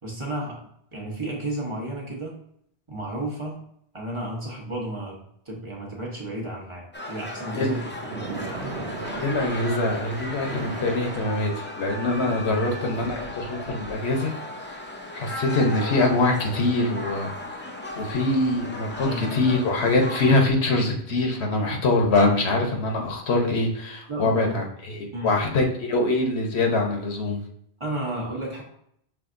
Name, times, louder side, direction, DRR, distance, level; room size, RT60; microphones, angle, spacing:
voice 1, 0.0-0.6 0.9-2.4 2.9-3.6 3.9-5.2 5.5-8.5 12.5-12.7 19.1-19.2 24.1-24.6 25.1-25.4 27.8-28.6, right 1 dB, 30° right, -3 dB, 0.9 m, -32 dB
sound 1, 6.9-20.5, left 1 dB, 20° left, 0.3 m, -36 dB
Splash splatter, 7.9-12.0, right 3 dB, 80° right, 1.1 m, -36 dB
voice 2, 9.2-14.3 15.1-17.6 18.0-27.4, left 2 dB, 75° left, 2 dB, 1.1 m, -24 dB
5.8 x 3.2 x 2.5 m, 0.70 s
omnidirectional pair, 1.1 m